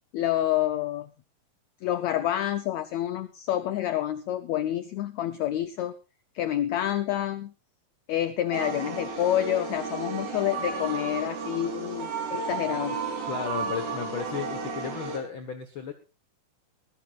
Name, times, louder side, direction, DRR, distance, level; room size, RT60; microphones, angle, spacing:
voice 1, 0.1-1.1 1.8-5.9 6.3-7.5 8.1-13.1, left 12 dB, 80° left, 12 dB, 1.6 m, -28 dB
sound 1, 8.5-15.2, right 4 dB, 80° right, 5.5 m, -33 dB
voice 2, 13.3-15.9, left 7 dB, 55° left, 7 dB, 1.4 m, -34 dB
20.0 x 15.5 x 2.5 m, 0.31 s
omnidirectional pair, 4.1 m